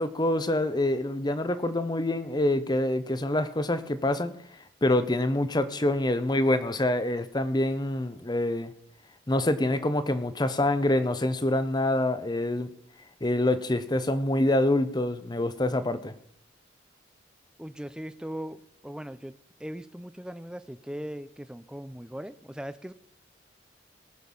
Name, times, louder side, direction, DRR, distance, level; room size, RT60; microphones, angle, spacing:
voice 1, 0.0-4.3 4.8-8.7 9.3-12.7 13.2-16.1, left 1 dB, 20° left, 12 dB, 0.8 m, -26 dB
voice 2, 17.6-19.3 19.6-22.9, equal, 5° right, 13 dB, 0.4 m, -39 dB
19.0 x 6.7 x 5.5 m, 0.70 s
head